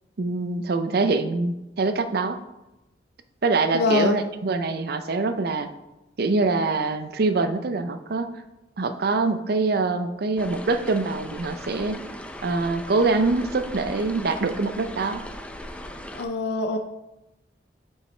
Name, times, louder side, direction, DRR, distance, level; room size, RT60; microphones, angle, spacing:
voice 1, 0.2-2.4 3.4-5.7 6.2-8.3 8.8-12.0 12.4-15.2, right 3 dB, 60° right, 9 dB, 0.5 m, -24 dB
voice 2, 3.7-4.2 16.1-16.8, left 3 dB, 65° left, 6 dB, 0.5 m, -24 dB
sound 1, 10.4-16.3, left 1 dB, 5° left, 0.4 m, -38 dB
7.7 x 5.6 x 3.2 m, 0.96 s
head